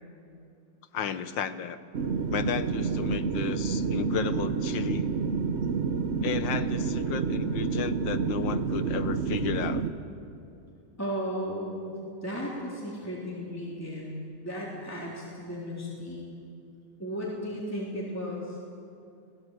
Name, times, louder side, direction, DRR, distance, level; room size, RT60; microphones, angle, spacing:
voice 1, 0.9-1.8 2.3-5.1 6.2-9.9, left 8 dB, 80° left, 12 dB, 1.7 m, -33 dB
sound 1, 1.9-9.9, right 5 dB, 45° right, 1.0 m, -29 dB
voice 2, 11.0-11.9 12.2-14.1 14.4-16.2 17.0-18.6, equal, 10° left, -5 dB, 3.5 m, -35 dB
29.0 x 18.0 x 8.2 m, 2.6 s
omnidirectional pair, 2.0 m